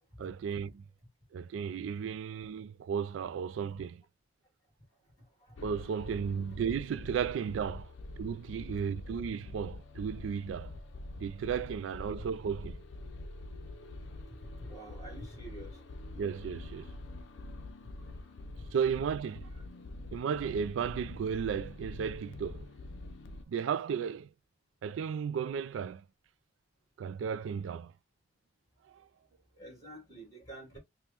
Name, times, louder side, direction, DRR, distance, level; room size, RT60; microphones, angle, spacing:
voice 1, 0.2-0.8 1.3-4.0 5.6-7.9 8.2-10.7 11.2-12.8 16.2-17.0 18.7-19.5 20.1-22.7 23.5-24.3 24.8-26.0 27.0-27.9 28.9-29.1, right 7 dB, 80° right, 0.3 m, -34 dB
voice 2, 5.4-5.7 14.3-15.8 17.8-17.9 18.3-18.4 19.5-19.6 29.6-30.8, right 1 dB, 20° left, 2.5 m, -49 dB
sound 1, 5.6-23.4, left 2 dB, 75° left, 0.5 m, -45 dB
5.2 x 2.2 x 2.9 m
head